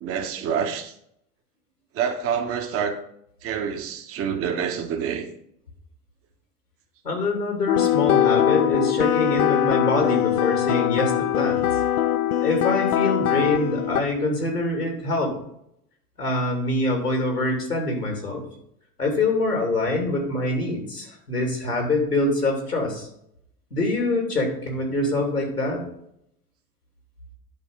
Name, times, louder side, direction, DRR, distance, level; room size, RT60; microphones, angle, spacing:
voice 1, 0.0-0.9 1.9-3.0 3.4-5.3, right 7 dB, 30° right, 1.2 m, -27 dB
voice 2, 7.0-11.7 12.4-15.3 16.2-18.4 19.0-23.1 23.7-25.8, left 2 dB, 85° left, 3.0 m, -25 dB
sound 1, 7.7-14.0, left 11 dB, 70° left, 0.6 m, -22 dB
10.5 x 4.7 x 5.3 m
figure-of-eight pair, 85°, 45 cm